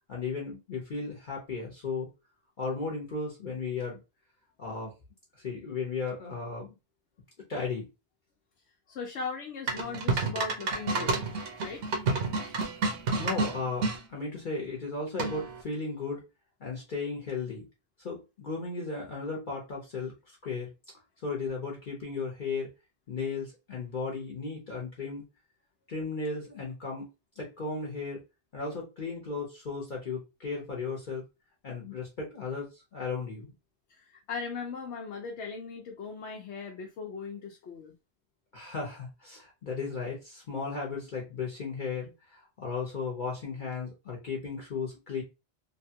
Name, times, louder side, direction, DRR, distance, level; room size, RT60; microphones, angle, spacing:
voice 1, 0.1-2.1 2.6-4.0 4.6-4.9 5.4-6.7 7.5-7.9 13.2-16.2 16.6-17.7 18.0-20.1 20.4-20.7 21.2-22.7 23.1-25.2 25.9-27.1 27.4-28.2 28.5-31.2 31.6-33.5 38.5-45.2, left 4 dB, 50° left, 0.9 m, -35 dB
voice 2, 8.9-11.2 11.5-11.9 33.9-37.9, left 5 dB, 85° left, 0.9 m, -38 dB
sound 1, 9.7-14.0 15.2-15.6, right 3 dB, 85° right, 1.0 m, -29 dB
3.2 x 2.2 x 2.7 m
omnidirectional pair, 1.1 m